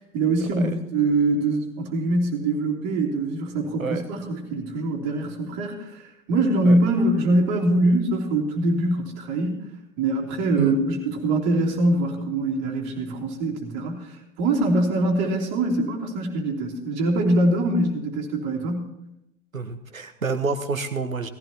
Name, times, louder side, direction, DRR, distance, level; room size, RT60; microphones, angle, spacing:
voice 1, 0.1-9.7 10.0-14.1 14.4-18.9, right 2 dB, 40° right, -1 dB, 3.2 m, -23 dB
voice 2, 19.5-21.3, right 4 dB, 85° right, 9 dB, 1.2 m, -28 dB
17.5 x 15.5 x 2.9 m, 0.86 s
figure-of-eight pair, 90°, 40 cm